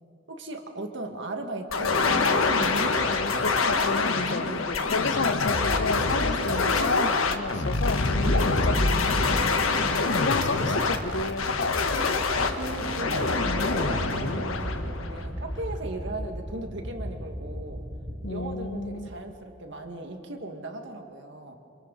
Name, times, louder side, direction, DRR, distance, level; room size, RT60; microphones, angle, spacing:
voice 1, 0.3-2.7 4.4-4.7 8.2-8.6 12.5-17.8 18.3-21.6, right 2 dB, 60° right, 4 dB, 1.9 m, -37 dB
sound 1, 1.7-15.6, left 3 dB, 85° left, 1.4 m, -25 dB
voice 2, 3.3-8.0 8.3-9.7 10.2-12.0 18.2-19.1, left 3 dB, 60° left, 12 dB, 0.7 m, -31 dB
sound 2, 11.1-18.4, equal, 40° right, 2.1 m, -38 dB
27.0 x 26.5 x 4.1 m, 2.7 s
head